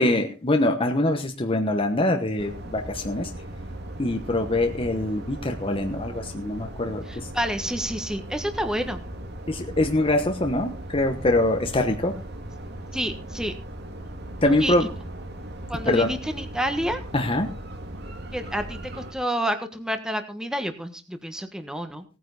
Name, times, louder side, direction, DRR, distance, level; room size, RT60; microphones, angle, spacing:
voice 1, 0.0-3.3 4.0-7.3 9.5-12.1 14.4-14.9 15.9-16.1 17.1-17.5, left 1 dB, 30° left, 4 dB, 1.2 m, -24 dB
sound 1, 2.4-19.1, right 1 dB, 60° right, 2.1 m, -38 dB
voice 2, 7.1-9.0 12.9-13.5 14.6-14.9 15.7-17.0 18.3-22.0, equal, 5° right, 7 dB, 1.4 m, -29 dB
18.0 x 9.6 x 4.1 m, 0.32 s
head